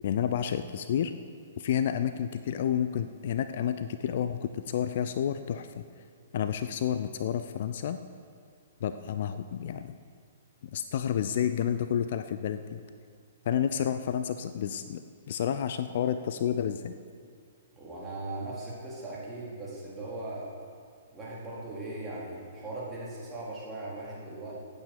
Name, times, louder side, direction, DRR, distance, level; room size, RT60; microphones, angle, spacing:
voice 1, 0.0-1.1 1.6-5.8 6.3-8.0 8.8-9.9 10.6-12.8 13.5-15.0 15.3-16.9, left 9 dB, 50° left, 10 dB, 0.5 m, -30 dB
voice 2, 17.8-20.5 21.1-24.5, right 2 dB, 15° right, -6 dB, 4.0 m, -39 dB
14.5 x 9.0 x 6.8 m, 2.2 s
figure-of-eight pair, 115°, 0 cm